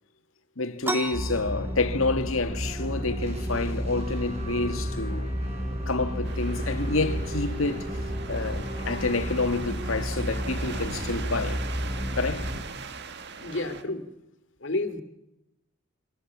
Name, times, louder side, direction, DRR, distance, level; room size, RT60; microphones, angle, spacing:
voice 1, 0.6-5.3 5.9-8.0 8.3-11.6 12.1-12.5, left 3 dB, 80° left, 1.8 m, -28 dB
sound 1, 0.8-10.2, right 1 dB, 10° right, 1.5 m, -41 dB
sound 2, 1.1-12.6, equal, 30° right, 6.9 m, -31 dB
sound 3, 6.2-13.8, right 5 dB, 55° right, 1.8 m, -41 dB
voice 2, 13.4-14.0 14.6-15.0, left 2 dB, 60° left, 2.6 m, -30 dB
29.0 x 25.5 x 7.4 m
head